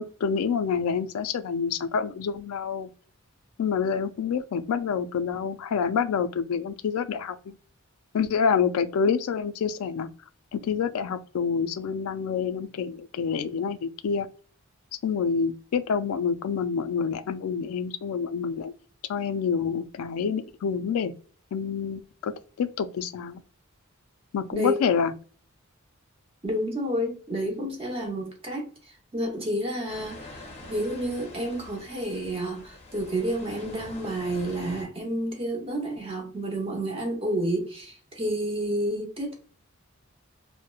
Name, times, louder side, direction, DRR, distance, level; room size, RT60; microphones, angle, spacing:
voice 1, 0.0-2.9 3.6-7.5 8.1-10.1 10.5-14.3 15.0-18.7 19.1-21.1 21.5-23.4 24.3-25.1, left 6 dB, 80° left, 0.3 m, -27 dB
voice 2, 26.4-28.7 29.1-39.3, right 1 dB, 25° right, 0.8 m, -30 dB
sound 1, 29.9-34.9, left 2 dB, 30° left, 0.6 m, -45 dB
2.9 x 2.1 x 2.3 m
head